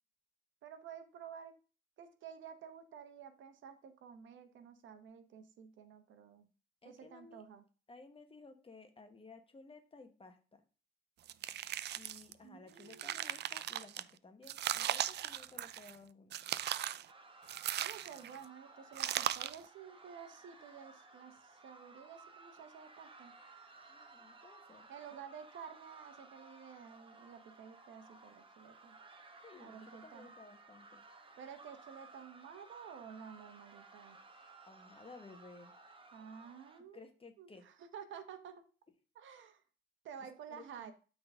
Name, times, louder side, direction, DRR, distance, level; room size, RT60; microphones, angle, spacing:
voice 1, 0.6-1.5 2.0-6.5 6.8-7.6 12.4-13.3 17.8-23.3 24.9-28.9 29.6-30.3 31.4-34.2 36.1-37.1 37.4-38.6 39.1-39.6 40.0-40.9, right 7 dB, 75° right, 8 dB, 1.2 m, -52 dB
voice 2, 6.8-7.4 7.9-10.6 11.9-16.3 23.9-24.9 29.4-31.0 34.7-35.7 36.9-37.6 40.5-40.9, left 3 dB, 30° left, 7 dB, 1.4 m, -56 dB
sound 1, 11.3-12.3 12.8-14.0 14.5-16.0 16.3-17.1 17.5-18.4 19.0-19.6, right 11 dB, 60° right, 0.4 m, -38 dB
sound 2, 17.1-36.8, right 3 dB, 25° right, 1.2 m, -58 dB
12.0 x 4.0 x 3.7 m, 0.36 s
cardioid pair, 90°, 20 cm